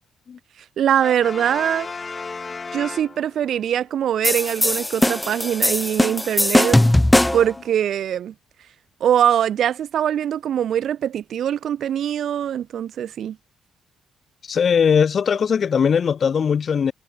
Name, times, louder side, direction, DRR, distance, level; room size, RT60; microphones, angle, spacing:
voice 1, 0.8-1.9 2.7-6.8 7.3-8.3 9.0-13.4, right 10 dB, 65° right, 2.2 m, -22 dB
Brass instrument, 1.0-3.7, left 4 dB, 30° left, 3.5 m, -34 dB
sound 1, 4.2-7.5, left 1 dB, 10° left, 1.0 m, -19 dB
voice 2, 14.4-16.9, left 7 dB, 50° left, 2.1 m, -19 dB
cardioid pair, 90°, 0 cm